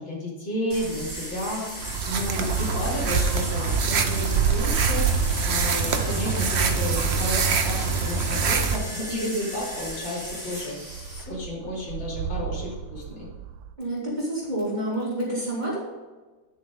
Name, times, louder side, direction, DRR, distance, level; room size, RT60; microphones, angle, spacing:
voice 1, 0.0-10.9 11.3-13.3, left 1 dB, 75° left, -5 dB, 3.7 m, -32 dB
sound 1, 0.7-11.2, equal, 10° left, 3.0 m, -37 dB
sound 2, 0.7-10.4 10.9-13.7, right 9 dB, 80° right, 1.3 m, -33 dB
sound 3, 1.8-8.8, right 5 dB, 65° right, 0.6 m, -25 dB
voice 2, 13.8-15.8, right 1 dB, 20° right, -6 dB, 3.3 m, -28 dB
10.5 x 6.9 x 3.8 m, 1.3 s
omnidirectional pair, 2.1 m